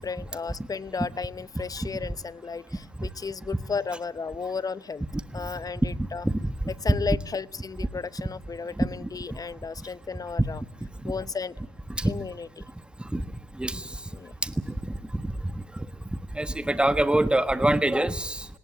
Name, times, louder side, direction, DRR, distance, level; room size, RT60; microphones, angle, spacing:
voice 1, 0.0-5.0 5.3-6.3 6.8-10.6 11.0-11.6 12.0-12.6 14.1-14.3, left 5 dB, 25° left, 18 dB, 0.8 m, -34 dB
voice 2, 8.8-9.1 12.0-12.1 13.1-13.2 13.6-13.9 14.4-14.5 14.8-15.3 16.3-18.5, right 1 dB, 5° right, 11 dB, 1.5 m, -25 dB
19.0 x 18.5 x 9.9 m, 0.97 s
supercardioid pair, 75°, 15 cm